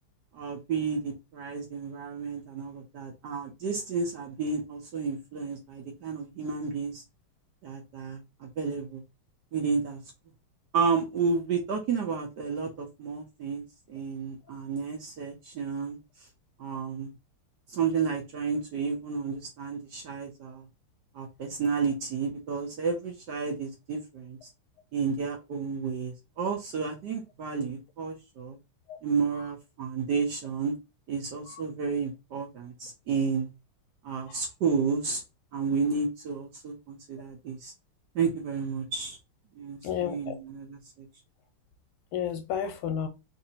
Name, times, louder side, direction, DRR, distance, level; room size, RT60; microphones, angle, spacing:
voice 1, 0.3-7.0 7.6-9.0 9.5-10.0 10.7-13.6 13.9-16.0 16.6-17.1 17.7-20.7 21.1-24.4 24.9-28.6 29.0-30.7 31.1-33.5 34.0-35.2 35.5-37.7 38.1-39.2 39.6-41.1, right 5 dB, 65° right, 1.1 m, -31 dB
voice 2, 39.8-40.3 42.1-43.1, left 8 dB, 80° left, 1.6 m, -32 dB
4.1 x 2.6 x 2.8 m
omnidirectional pair, 2.4 m